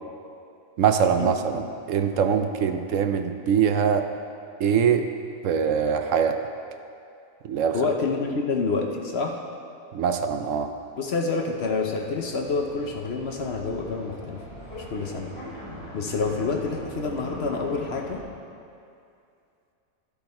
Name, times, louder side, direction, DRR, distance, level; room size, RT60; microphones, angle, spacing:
voice 1, 0.8-4.0 4.6-5.0 5.4-6.4 7.4-7.8 9.9-10.7, right 7 dB, 70° right, 7 dB, 0.9 m, -23 dB
voice 2, 7.7-9.4 11.0-14.4 14.9-15.3 15.9-18.2, left 4 dB, 55° left, 1 dB, 1.0 m, -27 dB
sound 1, 10.2-18.2, equal, 30° left, 2.4 m, -42 dB
13.5 x 7.1 x 4.3 m, 2.5 s
omnidirectional pair, 1.4 m